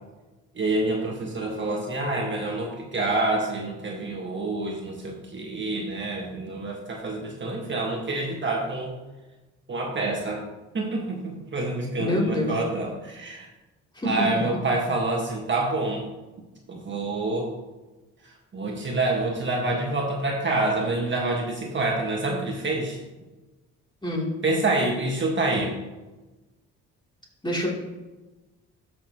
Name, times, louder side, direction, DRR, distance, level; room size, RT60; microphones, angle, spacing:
voice 1, 0.5-8.9 9.7-10.5 10.7-13.5 14.0-16.1 16.7-17.5 18.2-23.0 24.4-25.8, right 2 dB, 40° right, -1 dB, 1.6 m, -27 dB
voice 2, 12.0-12.5 13.9-14.1 24.0-24.3 27.4-27.7, left 1 dB, 15° left, -4 dB, 3.2 m, -26 dB
13.0 x 6.4 x 3.0 m, 1.1 s
cardioid pair, 90°, 30 cm